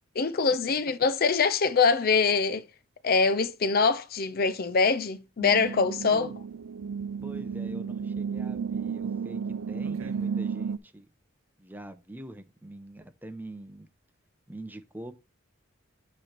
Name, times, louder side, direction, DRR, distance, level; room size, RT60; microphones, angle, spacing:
voice 1, 0.2-2.6 3.0-6.3, left 5 dB, 45° left, 0.5 m, -24 dB
sound 1, 5.4-10.8, right 6 dB, 80° right, 0.5 m, -33 dB
voice 2, 7.2-9.4 9.7-11.0 11.6-13.9 14.5-15.1, right 1 dB, 10° right, 0.7 m, -44 dB
9.2 x 3.2 x 5.9 m
head